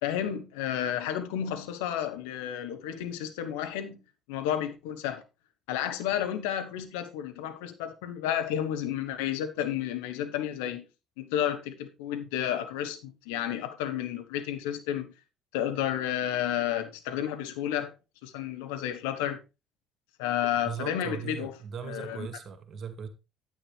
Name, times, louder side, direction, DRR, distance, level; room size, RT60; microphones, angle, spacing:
voice 1, 0.0-4.0 4.3-5.2 5.7-10.8 11.2-15.1 15.5-17.9 18.2-19.4 20.2-21.5 21.8-22.3, left 10 dB, 75° left, 1.2 m, -31 dB
voice 2, 20.6-23.1, right 7 dB, 45° right, 1.9 m, -38 dB
9.6 x 9.4 x 3.4 m
hypercardioid pair, 55°, 0 cm